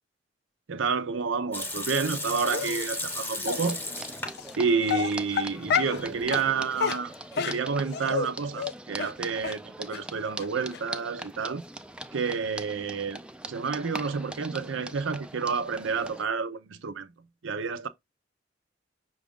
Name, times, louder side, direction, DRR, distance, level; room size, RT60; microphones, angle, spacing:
voice 1, 0.7-3.8 4.6-11.6 12.1-17.1 17.4-17.9, right 5 dB, 85° right, 0.6 m, -29 dB
Water tap faucet / Sink (filling or washing) / Liquid, 1.5-4.5 4.8-4.9 5.6-6.2, left 2 dB, 10° left, 0.9 m, -35 dB
Dog, 2.5-2.9 3.5-3.6 4.4-4.5 4.9-6.0 6.3-6.5 6.8-8.3 8.6-8.7 9.0-9.1 9.4-9.5 9.9-10.0 10.4-10.5 10.7-10.8, left 6 dB, 60° left, 0.4 m, -29 dB
sound 1, 3.5-16.2, right 1 dB, 5° right, 0.3 m, -41 dB
6.0 x 2.5 x 3.6 m
head